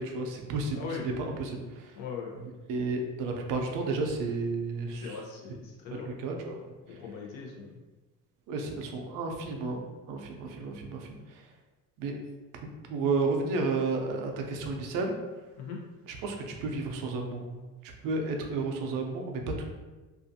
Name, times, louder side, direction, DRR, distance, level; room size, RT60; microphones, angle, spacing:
voice 1, 0.0-2.0 2.3-5.2 6.1-6.6 6.9-7.0 8.5-11.5 12.0-12.2 12.9-15.2 16.1-19.6, right 3 dB, 60° right, 2 dB, 0.5 m, -32 dB
voice 2, 2.0-2.3 4.9-6.1 6.9-7.8 15.6-15.8, left 6 dB, 65° left, -1 dB, 0.8 m, -40 dB
2.5 x 2.4 x 2.6 m, 1.2 s
cardioid pair, 155°, 38 cm